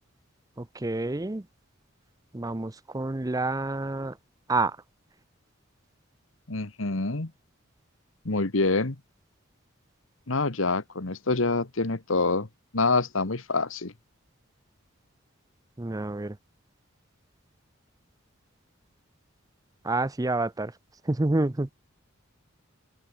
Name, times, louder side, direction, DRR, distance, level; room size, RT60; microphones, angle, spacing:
voice 1, 0.6-1.4 2.3-4.2 4.5-4.8 15.8-16.4 19.8-20.7 21.1-21.7, right 2 dB, 15° right, 0.6 m, -28 dB
voice 2, 6.5-7.3 8.2-8.9 10.3-12.5 12.7-13.9, left 3 dB, 70° left, 1.5 m, -26 dB
open air
head